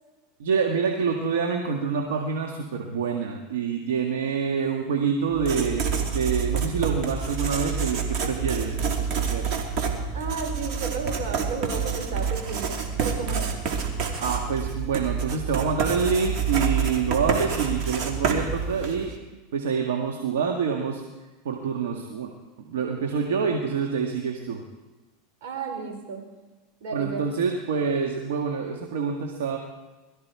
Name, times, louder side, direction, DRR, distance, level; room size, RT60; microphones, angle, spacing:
voice 1, 0.4-9.5 14.2-19.1 19.5-21.0 21.5-22.3 22.7-24.6 26.9-29.6, right 6 dB, 85° right, 2 dB, 1.7 m, -27 dB
Writing, 5.3-19.1, right 6 dB, 50° right, 2.8 m, -28 dB
voice 2, 10.1-13.6 25.4-26.3 26.8-27.3, right 4 dB, 65° right, 2 dB, 4.7 m, -33 dB
22.0 x 13.5 x 4.7 m, 1.2 s
supercardioid pair, 115°, 0 cm